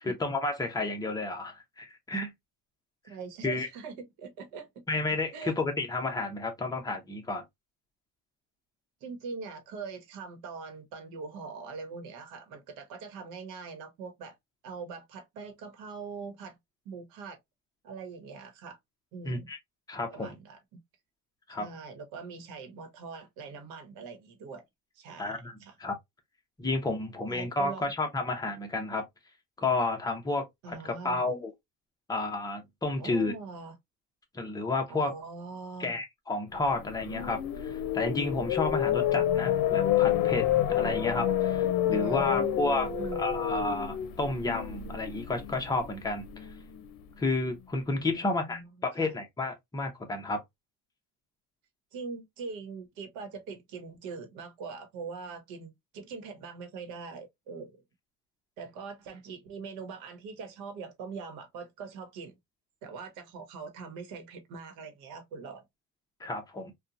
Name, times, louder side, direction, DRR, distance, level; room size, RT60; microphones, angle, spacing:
voice 1, 0.0-2.3 3.4-3.7 4.9-7.4 19.2-19.6 19.9-20.3 21.5-21.7 25.2-25.5 25.8-25.9 26.6-29.1 29.6-31.5 32.1-33.3 34.3-35.1 35.8-42.9 43.2-46.3 47.2-50.4 66.2-66.7, left 2 dB, 10° left, 0.7 m, -31 dB
voice 2, 3.0-4.8 5.3-5.5 9.0-14.4 14.6-16.6 16.8-17.4 17.8-18.8 19.1-19.5 20.1-20.8 21.5-24.6 25.0-25.8 27.3-27.9 30.6-31.2 33.0-33.8 34.9-36.0 41.9-43.2 48.1-49.1 51.9-57.8 58.6-62.3 62.8-65.6, right 5 dB, 85° right, 1.1 m, -42 dB
sound 1, 36.7-46.8, left 11 dB, 75° left, 0.6 m, -29 dB
2.9 x 2.3 x 2.4 m
cardioid pair, 145°, 35 cm